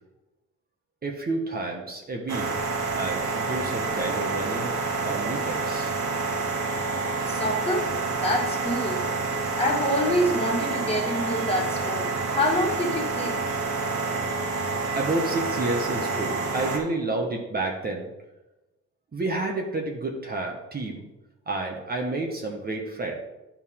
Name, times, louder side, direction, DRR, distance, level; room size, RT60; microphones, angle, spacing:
voice 1, 1.0-4.7 5.0-5.9 14.9-18.1 19.1-21.0 21.5-23.2, right 2 dB, 30° right, 0 dB, 1.3 m, -30 dB
sound 1, 2.3-16.8, right 3 dB, 80° right, 1.6 m, -28 dB
voice 2, 7.3-7.9 8.2-9.1 9.6-13.4, equal, 20° left, -1 dB, 2.1 m, -26 dB
10.5 x 4.8 x 3.7 m, 1.0 s
cardioid pair, 90°, 30 cm